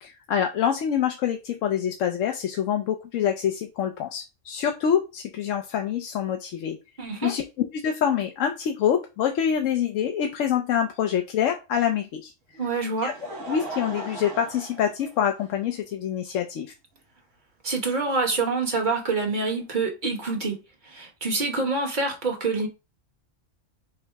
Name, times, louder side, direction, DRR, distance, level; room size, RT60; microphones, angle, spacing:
voice 1, 0.0-6.8 7.2-7.4 7.8-12.3 13.0-13.1 13.5-16.7, left 9 dB, 80° left, 1.0 m, -26 dB
voice 2, 7.0-7.3 12.6-13.1 17.6-20.6 20.8-22.7, right 3 dB, 40° right, 1.2 m, -26 dB
Laughter, 12.5-15.8 16.6-16.7 18.1-18.2, right 2 dB, 70° right, 1.5 m, -38 dB
5.5 x 2.0 x 4.5 m
omnidirectional pair, 1.3 m